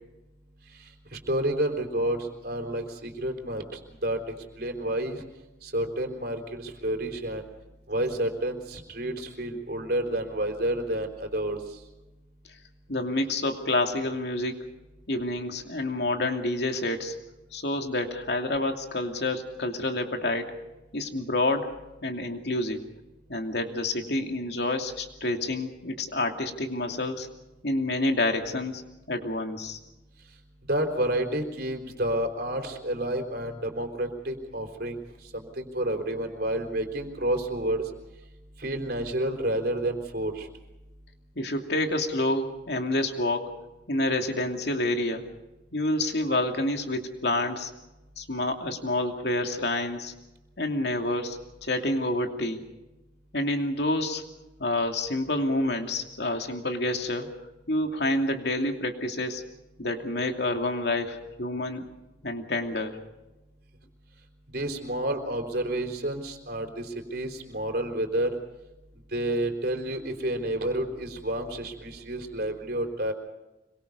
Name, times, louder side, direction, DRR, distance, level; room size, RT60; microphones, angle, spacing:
voice 1, 0.8-5.2 5.6-7.4 7.9-11.8 30.7-35.0 35.3-37.9 38.6-40.5 64.5-68.4 69.1-73.1, right 1 dB, 55° right, 5 dB, 3.9 m, -30 dB
voice 2, 12.9-14.7 15.1-17.1 17.5-20.5 20.9-21.7 22.0-22.8 23.3-27.3 27.6-28.8 29.1-29.8 41.4-43.5 43.9-45.3 45.7-47.7 48.2-50.1 50.6-52.7 53.3-54.2 54.6-57.3 57.7-59.4 59.8-61.9 62.2-63.0, left 2 dB, 65° left, 4 dB, 2.7 m, -28 dB
26.0 x 23.5 x 5.4 m, 1.0 s
head